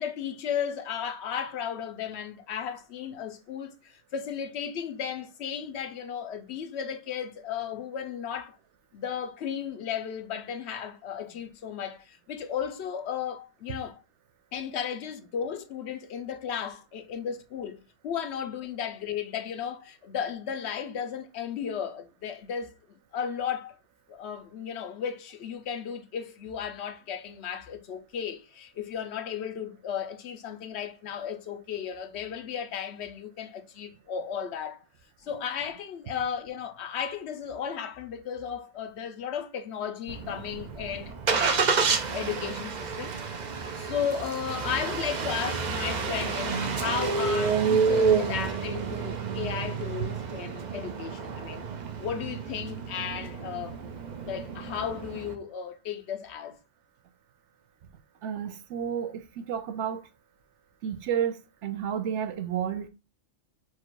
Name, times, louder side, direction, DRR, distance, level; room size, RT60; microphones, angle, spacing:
voice 1, 0.0-8.6 8.9-14.0 14.5-22.7 23.1-23.7 24.1-34.8 35.2-43.1 43.8-51.6 52.0-53.8 54.2-56.6, left 8 dB, 70° left, 0.8 m, -35 dB
Engine starting, 40.1-55.3, right 5 dB, 45° right, 0.6 m, -29 dB
voice 2, 58.2-60.1 60.8-62.9, right 8 dB, 75° right, 0.9 m, -31 dB
4.6 x 2.4 x 4.5 m
omnidirectional pair, 1.3 m